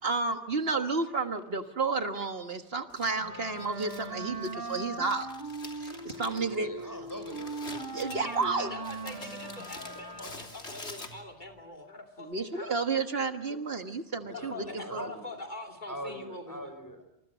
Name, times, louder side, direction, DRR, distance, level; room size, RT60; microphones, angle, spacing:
voice 1, 0.0-5.3 5.7-6.7 7.9-8.7 12.2-15.1, right 4 dB, 65° right, 1.8 m, -31 dB
Crumpling crinkling, 2.9-11.5, left 2 dB, 85° left, 3.5 m, -47 dB
Wind instrument woodwind instrument, 3.2-10.6, right 2 dB, 20° right, 2.6 m, -40 dB
voice 2, 6.2-7.6 9.9-10.4 14.2-15.3 15.9-17.0, equal, 15° left, 6.3 m, -43 dB
voice 3, 8.0-12.7 14.3-16.7, left 1 dB, 45° left, 2.9 m, -43 dB
28.5 x 27.5 x 6.2 m
omnidirectional pair, 1.1 m